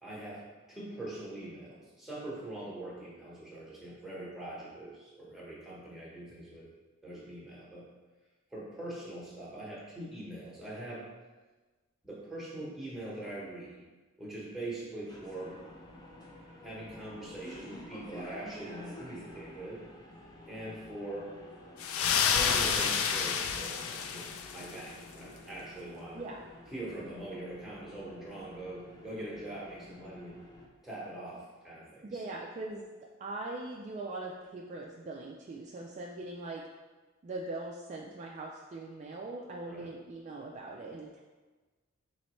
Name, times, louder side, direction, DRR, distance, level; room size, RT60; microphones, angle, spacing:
voice 1, 0.0-6.7 7.0-7.9 8.5-11.0 12.0-13.8 14.2-15.6 16.6-19.8 20.5-21.3 22.3-26.2 26.7-30.4 30.8-32.2 39.7-39.9, right 1 dB, ahead, -7 dB, 1.1 m, -42 dB
sound 1, 15.1-30.7, left 1 dB, 20° left, 0.5 m, -51 dB
sound 2, 21.8-24.8, left 7 dB, 70° left, 0.3 m, -29 dB
voice 2, 32.0-32.9 33.2-36.6 37.2-41.2, right 2 dB, 35° right, -1 dB, 0.3 m, -41 dB
4.3 x 3.1 x 3.0 m, 1.3 s
head